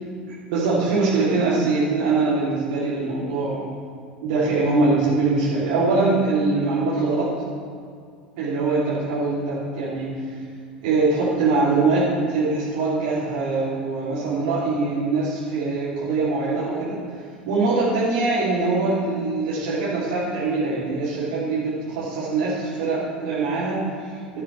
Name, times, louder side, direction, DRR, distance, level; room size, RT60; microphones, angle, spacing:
voice 1, 0.5-3.7 4.2-7.3 8.4-10.4 10.8-24.4, right 3 dB, 55° right, -10 dB, 3.4 m, -23 dB
14.5 x 13.0 x 3.5 m, 2.1 s
figure-of-eight pair, 75°, 5 cm